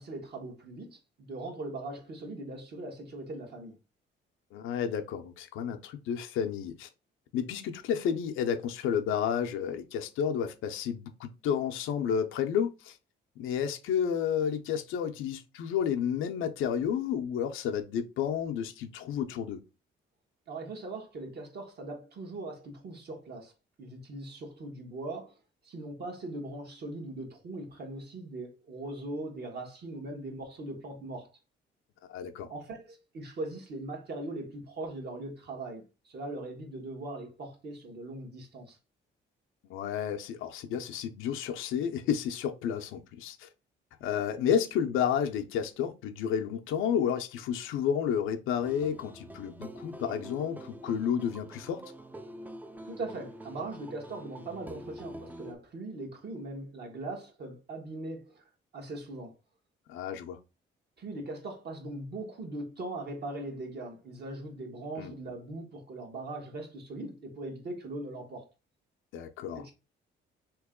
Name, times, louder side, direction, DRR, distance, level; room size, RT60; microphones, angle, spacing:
voice 1, 0.0-3.7 20.5-23.5 23.8-25.3 25.6-31.3 32.5-38.8 52.8-58.4 58.7-59.3 61.0-68.5 69.5-69.7, right 2 dB, 55° right, 1.3 m, -40 dB
voice 2, 4.5-6.9 7.3-13.0 13.4-19.6 32.1-32.5 39.7-43.5 44.0-51.8 59.9-60.4 65.0-65.1 69.1-69.6, left 8 dB, 90° left, 0.6 m, -31 dB
sound 1, 48.6-55.6, right 1 dB, 10° right, 0.4 m, -46 dB
3.0 x 2.9 x 3.6 m
cardioid pair, 90°, 20 cm